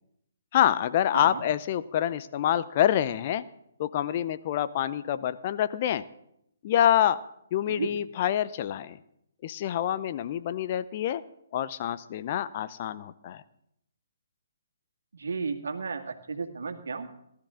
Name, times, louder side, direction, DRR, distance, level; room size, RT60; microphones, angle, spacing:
voice 1, 0.5-3.4 3.8-6.0 6.6-7.2 7.5-9.0 9.4-11.2 11.5-13.4, left 11 dB, 40° left, 14 dB, 0.7 m, -26 dB
voice 2, 1.1-1.4 7.7-7.9 15.1-17.2, right 4 dB, 70° right, 5 dB, 2.0 m, -33 dB
19.0 x 12.5 x 3.8 m, 0.76 s
figure-of-eight pair, 140°, 0 cm